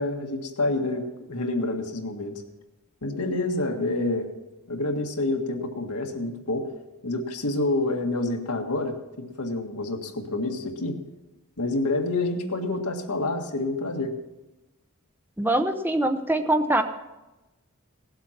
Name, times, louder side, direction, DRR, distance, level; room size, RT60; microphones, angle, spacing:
voice 1, 0.0-2.3 3.0-4.3 4.7-6.7 7.0-11.0 11.6-14.1, left 2 dB, 90° left, 2 dB, 1.8 m, -28 dB
voice 2, 15.4-16.8, right 1 dB, 10° right, 7 dB, 0.7 m, -23 dB
17.5 x 7.9 x 5.9 m, 1.0 s
head